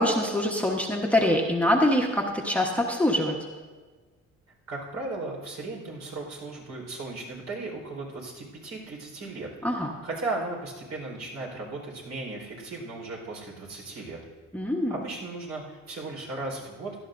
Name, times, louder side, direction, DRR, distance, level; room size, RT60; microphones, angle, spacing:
voice 1, 0.0-3.4 9.6-9.9 14.5-14.9, left 1 dB, 5° left, 1 dB, 1.2 m, -24 dB
voice 2, 4.7-14.2 14.9-17.0, right 2 dB, 60° right, -1 dB, 4.4 m, -36 dB
16.5 x 12.0 x 2.6 m, 1.4 s
cardioid pair, 90°, 30 cm